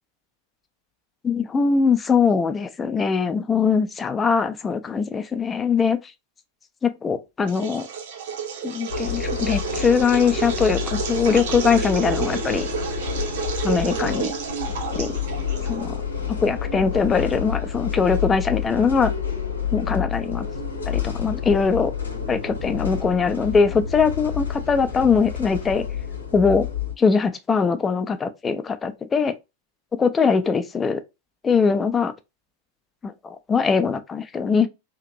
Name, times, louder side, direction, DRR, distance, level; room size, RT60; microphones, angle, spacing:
voice 1, 1.2-6.0 6.8-7.9 8.6-12.7 13.6-14.3 14.9-15.1 15.7-16.0 16.4-19.1 19.7-20.5 20.9-21.9 22.3-25.9 26.3-26.7 27.0-29.4 29.9-31.0 31.4-32.1 33.0-34.7, left 5 dB, 20° left, 0.4 m, -21 dB
sound 1, 7.5-16.0, right 7 dB, 55° right, 0.6 m, -31 dB
sound 2, 8.9-26.9, left 7 dB, 75° left, 0.7 m, -29 dB
2.9 x 2.5 x 2.6 m
figure-of-eight pair, 90°, 0 cm